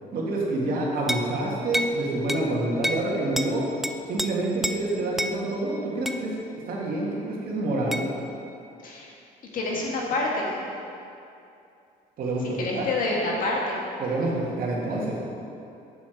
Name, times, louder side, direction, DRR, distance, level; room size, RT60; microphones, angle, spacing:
voice 1, 0.1-3.7 4.1-6.3 6.7-8.0 12.2-12.9 14.0-15.2, right 2 dB, 60° right, -3 dB, 1.8 m, -27 dB
sound 1, 1.1-1.3 1.7-2.0 2.3-2.5 2.8-3.1 3.4-3.5 3.8-4.3 4.6-4.8 5.2-5.4 6.1-6.2 7.9-8.1, equal, ahead, 0.3 m, -28 dB
voice 2, 9.5-10.5 12.6-13.8, left 2 dB, 55° left, -2 dB, 1.8 m, -27 dB
7.4 x 7.0 x 4.6 m, 2.6 s
cardioid pair, 110°, 17 cm